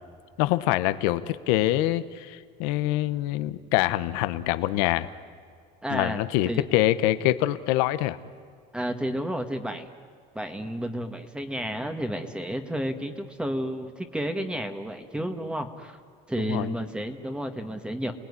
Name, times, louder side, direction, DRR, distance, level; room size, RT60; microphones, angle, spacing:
voice 1, 0.4-5.1 5.9-8.2 16.5-16.7, left 15 dB, 85° left, 12 dB, 1.1 m, -25 dB
voice 2, 5.8-6.6 8.7-9.9 10.3-16.0 16.3-18.1, equal, 5° right, 7 dB, 1.7 m, -31 dB
29.0 x 19.5 x 9.8 m, 2.1 s
cardioid pair, 140°, 18 cm